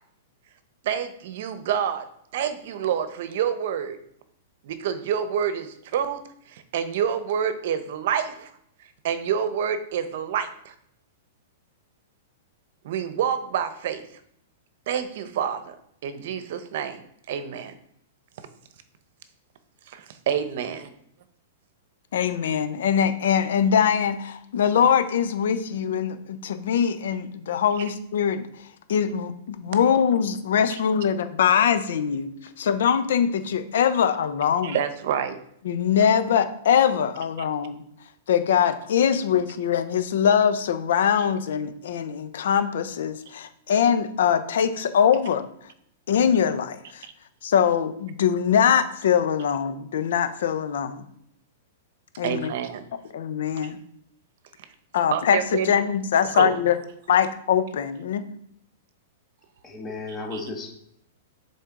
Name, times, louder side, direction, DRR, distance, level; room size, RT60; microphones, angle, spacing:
voice 1, 0.8-2.1 2.3-4.0 4.6-6.2 6.5-8.5 9.0-10.7 12.8-14.0 14.9-15.7 16.0-17.0 17.3-17.8 19.9-20.9 34.6-35.4 47.0-47.1 52.2-52.8 55.1-55.8 56.3-56.5 60.3-60.4, right 8 dB, 60° right, 11 dB, 0.8 m, -27 dB
voice 2, 22.1-28.5 28.9-32.3 32.6-34.8 35.6-37.8 38.3-45.5 46.1-47.0 47.4-51.0 52.2-52.5 53.1-53.8 54.9-55.4 55.6-56.8 57.1-58.2, left 8 dB, 75° left, 11 dB, 0.8 m, -22 dB
voice 3, 59.6-60.7, left 3 dB, 15° left, 0 dB, 1.4 m, -34 dB
6.8 x 4.1 x 3.8 m, 0.70 s
hypercardioid pair, 145°, 0 cm